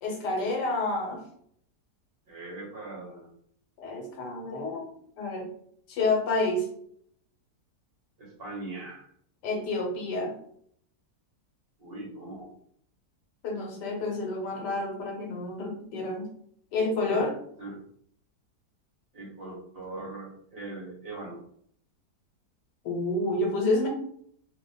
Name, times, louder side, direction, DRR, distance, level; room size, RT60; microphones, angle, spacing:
voice 1, 0.0-1.2 3.8-4.9 5.2-5.5 5.9-6.7 9.4-10.3 13.4-16.3 16.7-17.4 22.8-23.9, left 2 dB, 80° left, 2 dB, 1.5 m, -29 dB
voice 2, 2.3-3.4 8.2-9.1 11.8-12.5 17.1-17.2 17.6-17.8 19.1-21.4, right 2 dB, 45° right, -4 dB, 0.9 m, -40 dB
2.8 x 2.4 x 3.8 m, 0.64 s
omnidirectional pair, 1.8 m